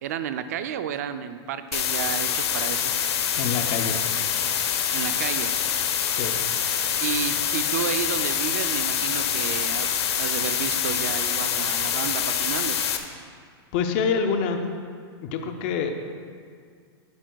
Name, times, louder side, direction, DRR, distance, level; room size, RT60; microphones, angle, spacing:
voice 1, 0.0-2.9 4.9-5.5 7.0-12.8, right 8 dB, 40° right, 10 dB, 0.4 m, -31 dB
sound 1, 1.7-13.0, left 8 dB, 80° left, 0.8 m, -25 dB
voice 2, 3.4-4.0 6.1-6.4 13.7-14.6 15.2-15.9, left 6 dB, 25° left, 6 dB, 0.5 m, -26 dB
11.5 x 9.2 x 2.3 m, 2.1 s
supercardioid pair, 180°, 14 cm